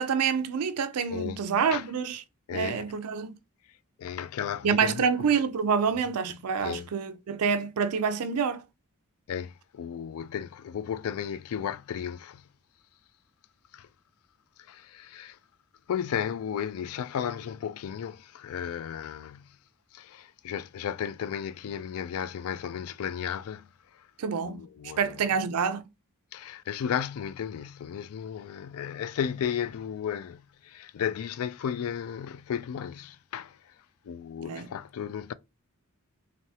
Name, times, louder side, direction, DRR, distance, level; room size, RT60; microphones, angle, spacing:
voice 1, 0.0-2.2 2.5-3.4 4.6-8.6 24.2-24.7 25.0-25.8 34.5-34.7, right 6 dB, 85° right, 0.4 m, -27 dB
voice 2, 1.1-1.4 1.7-1.9 2.5-2.8 4.0-5.3 6.6-6.9 9.3-12.5 13.7-13.9 14.7-15.4 15.9-19.6 19.9-23.7 24.4-25.3 26.3-33.6 34.0-35.3, left 8 dB, 70° left, 0.3 m, -34 dB
3.3 x 2.6 x 2.8 m
head